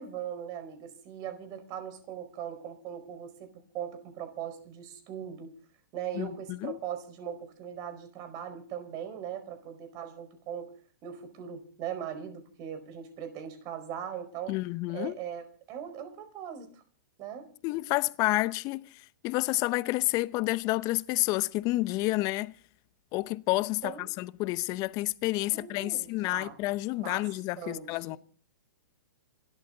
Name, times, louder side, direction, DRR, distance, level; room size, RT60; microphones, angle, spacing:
voice 1, 0.0-5.5 5.9-10.7 11.0-14.6 14.9-16.8 17.2-17.5 23.8-24.1 25.5-26.6 27.0-27.3 27.6-28.2, right 9 dB, 35° right, 4.9 m, -40 dB
voice 2, 14.5-15.2 17.6-18.9 19.2-22.5 23.1-28.2, left 20 dB, 35° left, 0.7 m, -29 dB
27.0 x 13.0 x 3.9 m
hypercardioid pair, 130°, 11 cm